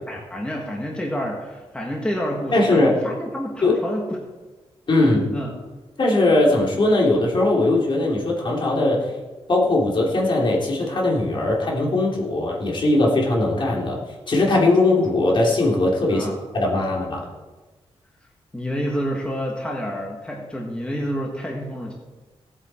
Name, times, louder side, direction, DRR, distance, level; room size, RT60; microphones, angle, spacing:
voice 1, 0.1-4.2 5.3-5.5 16.1-16.4 18.5-21.9, equal, 10° left, -1 dB, 1.8 m, -28 dB
voice 2, 2.5-2.9 3.6-3.8 4.9-5.3 6.0-9.1 9.5-14.0 14.3-16.3 16.5-17.2, left 2 dB, 50° left, -2 dB, 3.4 m, -19 dB
17.5 x 8.4 x 4.5 m, 1.2 s
wide cardioid pair, 115°, 11 cm